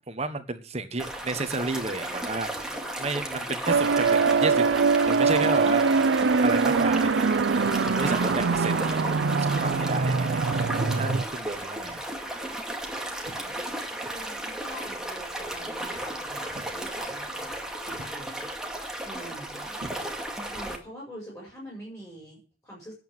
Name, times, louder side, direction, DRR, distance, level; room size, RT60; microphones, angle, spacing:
voice 1, 0.1-5.9 6.4-13.5, right 3 dB, 35° right, 1.2 m, -33 dB
sound 1, 1.0-20.8, right 1 dB, 5° right, 2.2 m, -34 dB
sound 2, 3.7-11.2, right 4 dB, 90° right, 0.5 m, -23 dB
sound 3, 11.9-12.2 13.2-13.7 14.9-15.1 16.5-17.0 17.9-18.4 19.8-20.5, right 2 dB, 55° right, 0.9 m, -46 dB
voice 2, 14.0-18.5 18.8-19.7 20.5-22.9, equal, 15° left, 5.3 m, -44 dB
9.5 x 8.2 x 9.1 m
head